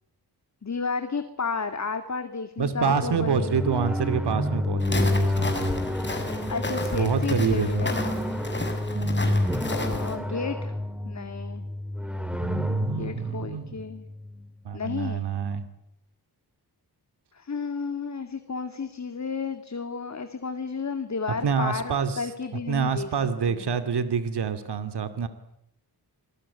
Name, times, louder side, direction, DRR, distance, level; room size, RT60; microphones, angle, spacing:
voice 1, 0.6-3.6 6.5-8.0 9.7-10.7 11.0-11.6 13.0-14.1 14.7-15.2 17.3-23.1 23.5-23.7, left 4 dB, 45° left, 8 dB, 2.5 m, -32 dB
voice 2, 2.6-5.7 6.9-7.9 8.9-9.4 12.3-13.8 14.6-15.7 21.4-22.3 22.7-25.3, right 6 dB, 85° right, 11 dB, 2.5 m, -27 dB
sound 1, 2.8-14.5, left 1 dB, 5° right, 2.7 m, -29 dB
Walk footsteps, 4.8-10.2, left 2 dB, 25° left, 6.9 m, -33 dB
28.0 x 21.5 x 9.9 m, 0.77 s
wide cardioid pair, 85°, 39 cm